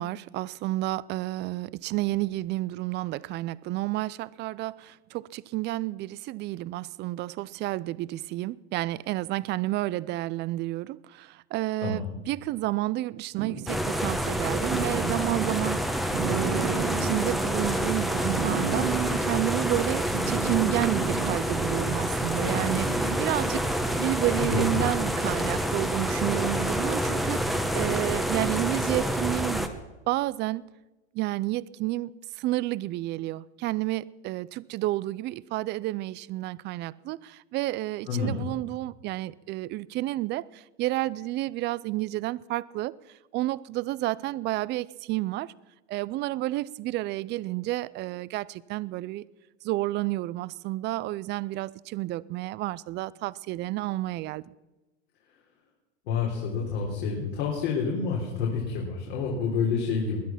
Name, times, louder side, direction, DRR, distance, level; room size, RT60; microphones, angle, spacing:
voice 1, 0.0-29.8 30.1-30.6 31.1-32.1 32.4-42.9 43.3-45.5 45.9-49.2 49.6-54.4, right 17 dB, 30° right, 0.4 m, -31 dB
sound 1, 13.4-13.8 14.7-15.6 16.1-17.3 18.1-19.2 20.1-21.4 22.4-23.3 25.2-25.3, right 7 dB, 65° right, 2.5 m, -32 dB
sound 2, 13.7-29.7, equal, ahead, 1.1 m, -28 dB
voice 2, 24.4-24.8 38.1-38.5 56.1-60.2, left 5 dB, 70° left, 3.8 m, -28 dB
20.5 x 10.5 x 5.8 m
hypercardioid pair, 110°, 35 cm